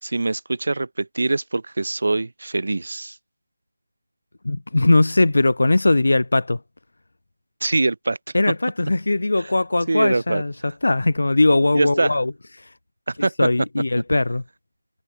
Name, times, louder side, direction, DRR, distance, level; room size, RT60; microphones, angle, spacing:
voice 1, 0.0-3.2 7.6-8.2 9.9-10.7 11.7-12.1 13.1-13.5, right 2 dB, 65° right, 6.8 m, -23 dB
voice 2, 4.5-6.6 8.3-12.3 13.4-14.4, left 2 dB, 70° left, 1.6 m, -19 dB
figure-of-eight pair, 165°, 0 cm